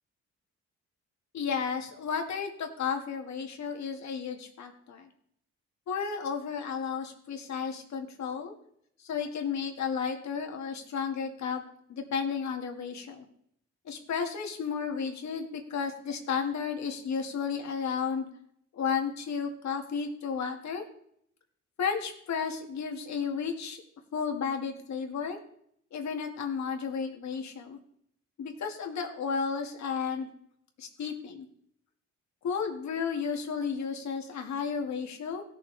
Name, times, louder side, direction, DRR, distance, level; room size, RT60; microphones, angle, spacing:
voice 1, 1.3-5.1 5.9-8.5 9.0-11.6 11.9-13.3 13.9-18.3 18.7-20.8 21.8-23.8 24.1-25.4 25.9-27.8 28.4-30.3 30.8-31.5 32.4-35.4, left 6 dB, 65° left, 4 dB, 2.1 m, -33 dB
17.0 x 7.2 x 3.4 m, 0.69 s
cardioid pair, 90°, 30 cm